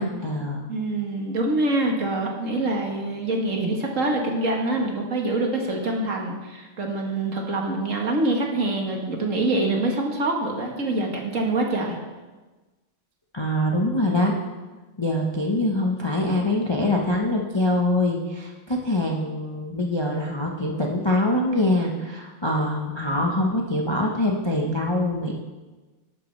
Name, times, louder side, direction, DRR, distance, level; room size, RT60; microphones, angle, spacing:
voice 1, 0.0-0.6 13.3-14.3 15.0-25.3, left 1 dB, 40° left, -1 dB, 0.3 m, -24 dB
voice 2, 0.7-12.0, right 2 dB, 45° right, 1 dB, 1.5 m, -25 dB
11.5 x 11.0 x 3.2 m, 1.2 s
omnidirectional pair, 2.3 m